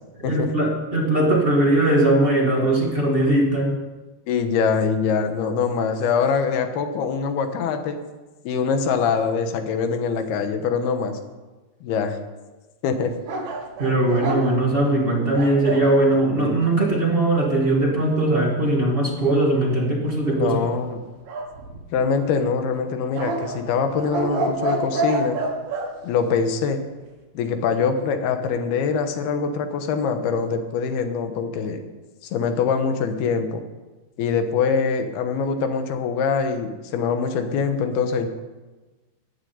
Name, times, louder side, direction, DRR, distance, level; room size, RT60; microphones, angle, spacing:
voice 1, 0.2-3.7 13.8-20.6, right 1 dB, 55° right, -2 dB, 0.6 m, -20 dB
voice 2, 4.3-8.0 8.4-11.2 11.8-12.2 12.8-13.1 20.3-21.1 21.9-25.4 26.0-26.8 27.3-31.9 32.2-33.6 34.2-38.3, left 5 dB, 75° left, 7 dB, 3.1 m, -23 dB
sound 1, 13.3-15.9 21.3-22.1 23.2-25.9, right 2 dB, 85° right, 3.7 m, -28 dB
14.5 x 7.4 x 9.4 m, 1.2 s
omnidirectional pair, 4.6 m